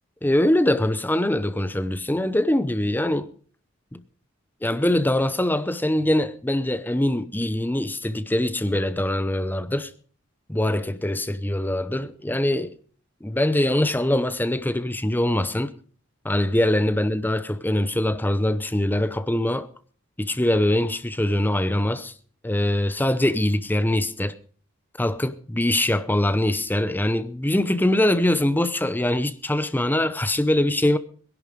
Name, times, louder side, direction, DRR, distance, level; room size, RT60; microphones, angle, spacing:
voice 1, 0.2-3.3 3.9-4.0 4.6-9.9 10.5-12.8 13.2-15.7 16.2-19.7 20.2-22.1 22.4-24.3 25.0-31.0, left 1 dB, 10° left, 0.7 m, -23 dB
22.0 x 11.0 x 5.1 m
head